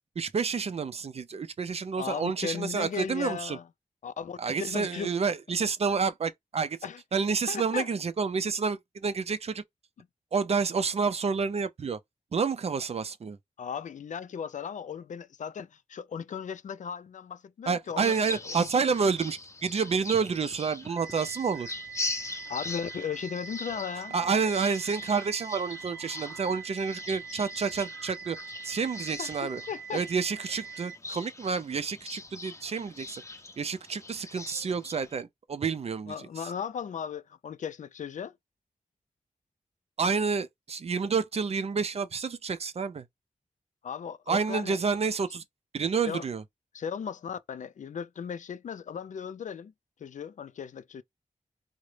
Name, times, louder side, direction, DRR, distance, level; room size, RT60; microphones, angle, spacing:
voice 1, 0.2-3.6 4.4-6.8 7.1-9.6 10.3-12.0 12.3-13.4 17.7-21.7 24.1-28.4 28.6-29.6 29.9-33.2 33.6-36.1 40.0-43.0 44.3-45.4 45.7-46.4, right 5 dB, 50° right, 0.4 m, -29 dB
voice 2, 2.0-3.7 4.0-5.1 6.8-7.0 7.5-7.9 10.0-10.1 13.6-18.7 22.5-24.1 29.2-30.0 36.1-38.4 43.8-44.8 46.1-46.3 46.7-49.7 50.0-51.0, left 7 dB, 70° left, 0.4 m, -36 dB
sound 1, 18.0-35.2, left 2 dB, 20° left, 0.6 m, -42 dB
sound 2, 21.0-31.0, right 6 dB, 25° right, 0.9 m, -44 dB
3.8 x 2.1 x 3.2 m
wide cardioid pair, 95°, 13 cm